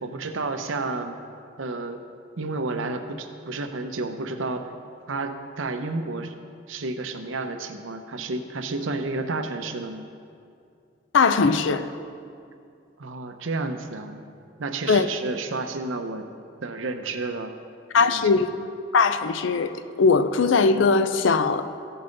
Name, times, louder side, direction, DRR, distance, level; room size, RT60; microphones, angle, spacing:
voice 1, 0.0-1.2 1.6-2.0 2.4-4.7 5.1-6.3 6.7-10.1 13.0-14.2 14.6-16.3 16.6-17.5 18.0-18.3, right 3 dB, 80° right, 7 dB, 0.7 m, -31 dB
voice 2, 11.1-11.8 14.9-15.1 17.9-18.5 18.9-19.7 20.0-21.7, left 4 dB, 75° left, 11 dB, 0.5 m, -20 dB
15.5 x 5.5 x 4.0 m, 2.4 s
head